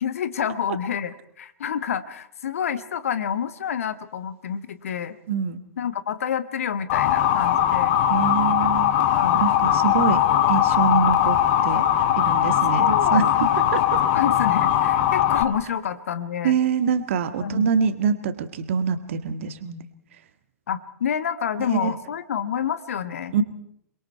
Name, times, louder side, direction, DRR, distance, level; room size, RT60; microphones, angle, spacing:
voice 1, 0.0-5.2 5.8-8.0 9.1-9.4 10.0-10.5 12.8-13.3 14.0-16.6 17.4-17.7 20.7-23.4, left 8 dB, 60° left, 14 dB, 1.3 m, -28 dB
voice 2, 5.3-5.6 8.1-9.0 9.4-10.2 10.5-11.4 11.6-11.8 12.2-13.3 13.7-14.0 16.4-19.9 21.7-21.9 23.3-23.4, right 6 dB, 50° right, 10 dB, 1.8 m, -24 dB
Motor vehicle (road) / Siren, 6.9-15.4, left 11 dB, 40° left, 1.6 m, -20 dB
28.5 x 22.0 x 4.5 m, 0.69 s
figure-of-eight pair, 105°, 9 cm